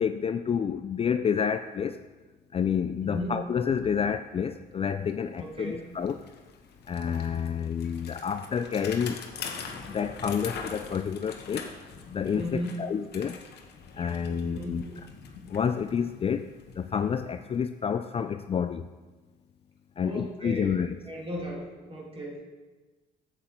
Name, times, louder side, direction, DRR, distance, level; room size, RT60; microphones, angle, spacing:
voice 1, 0.0-2.0 2.5-6.2 6.9-9.2 9.9-11.7 12.1-13.4 13.9-14.8 15.5-16.5 16.8-18.9 20.0-21.0, left 7 dB, 30° left, 10 dB, 0.4 m, -29 dB
voice 2, 3.0-3.3 5.4-5.9 12.3-12.8 14.4-14.7 20.0-22.4, equal, 30° right, -2 dB, 2.8 m, -36 dB
Bicycle, 4.6-4.7 5.0-17.9, left 6 dB, 65° left, 1.1 m, -44 dB
8.0 x 7.5 x 4.4 m, 1.2 s
supercardioid pair, 70°, 18 cm